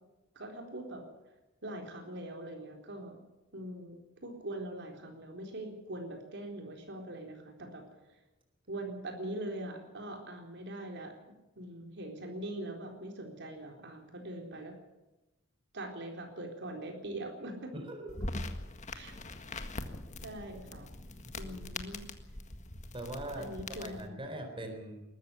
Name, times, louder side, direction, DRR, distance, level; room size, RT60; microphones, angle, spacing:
voice 1, 0.4-1.0 1.6-3.2 3.5-7.8 8.7-11.2 11.6-14.7 15.7-17.7 18.9-19.1 20.2-20.9 21.4-22.0 23.3-24.2, right 1 dB, 60° right, 3 dB, 4.1 m, -42 dB
voice 2, 17.7-18.3 21.4-21.5 22.9-23.5 23.8-25.0, right 1 dB, 25° right, 4 dB, 4.2 m, -41 dB
sound 1, 18.1-24.1, left 2 dB, 35° left, 1.7 m, -42 dB
21.5 x 14.0 x 9.7 m, 1.0 s
head